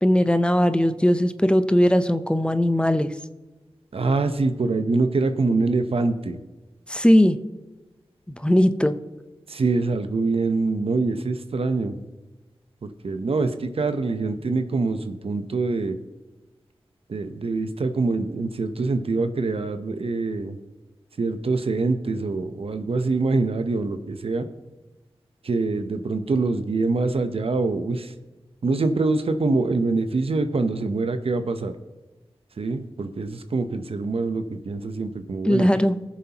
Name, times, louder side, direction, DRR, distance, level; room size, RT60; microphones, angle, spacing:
voice 1, 0.0-3.1 6.9-7.4 8.4-9.0 35.4-36.0, equal, 10° left, 10 dB, 0.7 m, -19 dB
voice 2, 3.9-6.4 9.5-12.0 12.8-16.0 17.1-20.6 21.2-24.5 25.4-28.1 28.6-31.7 32.6-35.7, right 3 dB, 70° right, 9 dB, 0.9 m, -24 dB
20.0 x 7.3 x 3.0 m, 1.1 s
cardioid pair, 40°, 10 cm